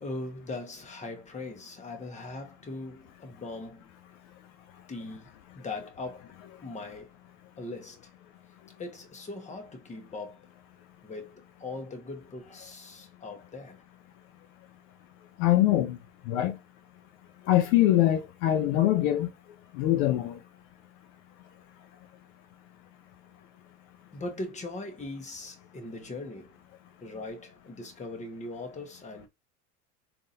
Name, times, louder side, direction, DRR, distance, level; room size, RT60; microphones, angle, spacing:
voice 1, 0.0-3.8 4.9-5.3 5.5-7.2 7.6-8.1 8.8-10.5 11.0-13.8 24.1-26.6 27.0-29.3, left 2 dB, 15° left, 1.1 m, -40 dB
voice 2, 15.4-16.0 16.2-16.6 17.4-19.3 19.7-20.4, left 13 dB, 60° left, 0.6 m, -23 dB
3.7 x 2.7 x 2.7 m
hypercardioid pair, 85°, 44 cm